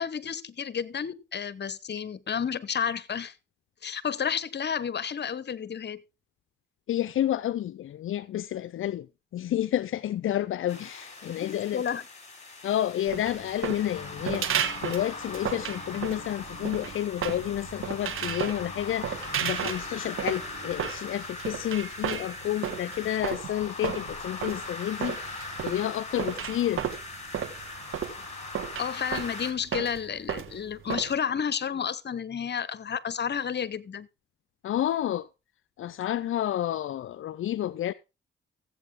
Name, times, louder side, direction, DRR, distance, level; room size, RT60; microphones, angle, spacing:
voice 1, 0.0-3.4 3.8-6.0 11.2-12.0 28.8-34.1, left 7 dB, 55° left, 0.9 m, -31 dB
voice 2, 6.9-9.1 9.3-11.8 12.6-26.9 34.6-35.3 35.8-37.9, left 12 dB, 70° left, 0.5 m, -30 dB
sound 1, 10.7-29.5, left 3 dB, 30° left, 3.7 m, -40 dB
sound 2, 13.1-31.1, right 9 dB, 80° right, 1.4 m, -34 dB
sound 3, 13.9-20.9, right 3 dB, 50° right, 6.6 m, -49 dB
14.5 x 8.3 x 3.7 m
supercardioid pair, 50°, 21 cm